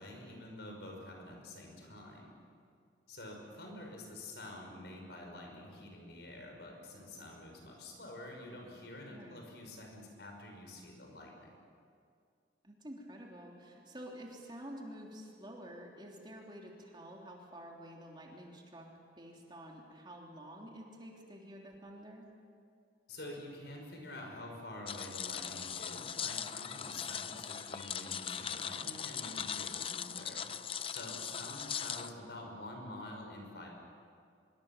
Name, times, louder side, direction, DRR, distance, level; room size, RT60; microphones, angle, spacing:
voice 1, 0.0-2.3 3.1-11.6 23.1-30.5 30.9-33.7, left 1 dB, 65° left, 1 dB, 5.8 m, -48 dB
voice 2, 9.1-9.5 12.6-18.9 19.2-22.3 29.7-30.2, equal, 25° right, -1 dB, 3.4 m, -49 dB
sound 1, 24.9-32.1, left 8 dB, 30° left, 0.6 m, -40 dB
25.0 x 23.5 x 7.5 m, 2.3 s
head